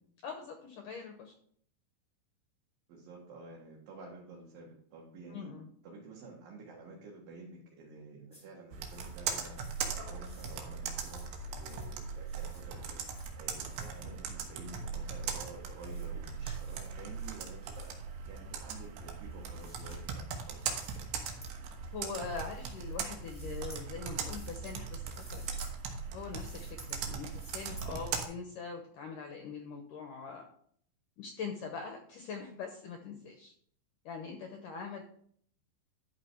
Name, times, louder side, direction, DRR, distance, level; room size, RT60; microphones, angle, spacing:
voice 1, 0.2-1.3 5.3-5.7 21.9-25.5 26.1-30.5 31.2-33.5 34.1-35.0, left 5 dB, 75° left, 4 dB, 2.0 m, -43 dB
voice 2, 2.9-5.5 5.8-9.6 9.9-13.0 13.3-17.9 18.3-20.7 27.7-28.0, right 3 dB, 60° right, -2 dB, 3.0 m, -50 dB
sound 1, 8.3-8.4 8.8-9.2 9.5-9.9 10.2-10.6 10.9-11.3 11.6-11.9 12.2-12.6 12.9-13.3 13.6-14.0 14.7-14.8 15.2-15.3 15.7-16.1 16.4-16.9 17.1-17.9 18.8-20.0 20.6-21.0 21.4-21.5 22.0-22.9 23.2-23.8 24.2-24.7 25.1-25.7 26.3-27.0 27.3-27.9, equal, 5° left, 1.3 m, -56 dB
Computer keyboard, 8.7-28.3, right 6 dB, 80° right, 3.4 m, -39 dB
12.0 x 6.1 x 4.5 m, 0.63 s
omnidirectional pair, 5.0 m